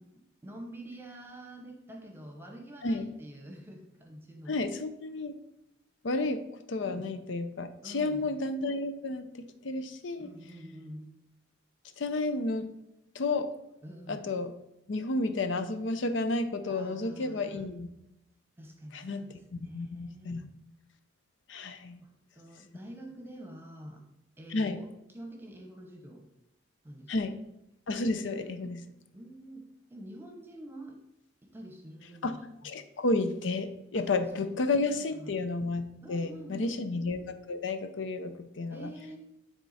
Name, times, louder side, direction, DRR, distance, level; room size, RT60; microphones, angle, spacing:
voice 1, 0.0-4.6 6.8-7.1 7.8-8.3 10.2-11.1 13.8-14.2 16.7-17.6 18.6-20.4 22.0-24.0 24.4-26.3 26.8-27.1 28.6-28.8 29.1-31.0 31.4-32.4 33.9-34.1 34.4-35.4 36.0-36.8 38.7-39.2, right 1 dB, 10° right, 3 dB, 1.0 m, -47 dB
voice 2, 4.5-5.3 6.0-6.4 6.7-10.3 12.0-12.7 13.1-13.5 14.1-14.5 14.9-17.9 18.9-19.2 19.6-20.5 21.5-22.0 24.5-24.8 27.1-27.4 27.9-28.8 32.2-32.4 32.6-38.9, left 2 dB, 85° left, 9 dB, 0.6 m, -31 dB
9.8 x 3.7 x 4.1 m, 0.87 s
head